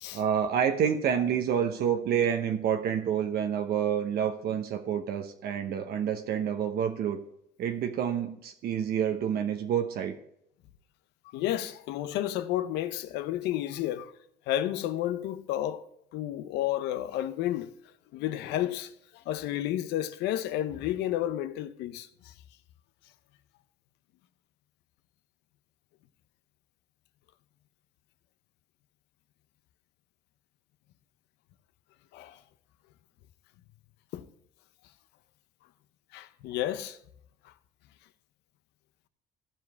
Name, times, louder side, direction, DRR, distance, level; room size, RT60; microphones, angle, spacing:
voice 1, 0.1-7.2 7.6-10.1, right 8 dB, 65° right, 0.9 m, -28 dB
voice 2, 11.2-14.1 14.5-15.8 16.1-17.7 18.1-22.3 32.1-32.4 34.1-34.3 36.1-37.0, left 12 dB, 85° left, 0.7 m, -31 dB
15.0 x 5.0 x 4.6 m
cardioid pair, 110°, 17 cm